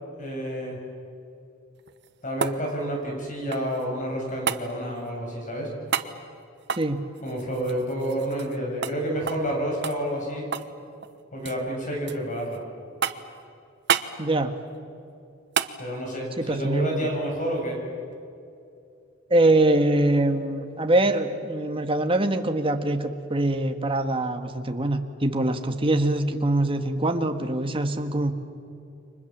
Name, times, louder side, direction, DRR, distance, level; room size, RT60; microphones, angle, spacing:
voice 1, 0.2-0.8 2.2-5.7 7.2-10.5 11.3-12.6 15.8-17.8, equal, 40° left, 0 dB, 7.5 m, -29 dB
sound 1, 1.8-3.9 4.5-4.7 5.9-6.1 6.6-8.6 8.8-9.0 9.3-9.5 9.8-10.8 11.0-11.6 12.1-12.6 13.0-13.4 13.9-14.1 15.5-15.8 18.1-18.2, right 7 dB, 65° right, 1.1 m, -30 dB
voice 2, 14.2-14.5 16.4-17.1 19.3-28.3, right 1 dB, 30° right, 6 dB, 1.7 m, -23 dB
30.0 x 25.0 x 7.4 m, 2.6 s
head